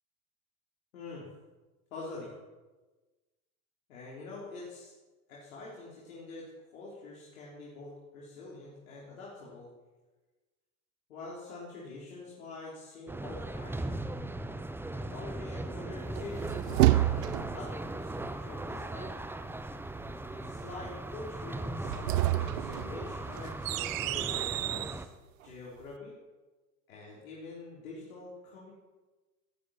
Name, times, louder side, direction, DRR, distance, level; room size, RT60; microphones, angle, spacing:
voice 1, 0.9-1.3 1.9-2.3 3.9-4.9 5.3-9.7 11.1-14.1 14.9-19.2 20.3-25.1 25.4-26.1 26.9-28.7, left 3 dB, 70° left, -5 dB, 3.9 m, -45 dB
sound 1, 13.1-25.0, right 2 dB, 5° right, 0.9 m, -38 dB
sound 2, 16.2-17.7 21.7-25.0, right 16 dB, 65° right, 0.6 m, -29 dB
18.0 x 14.5 x 4.4 m, 1.2 s
figure-of-eight pair, 75°, 43 cm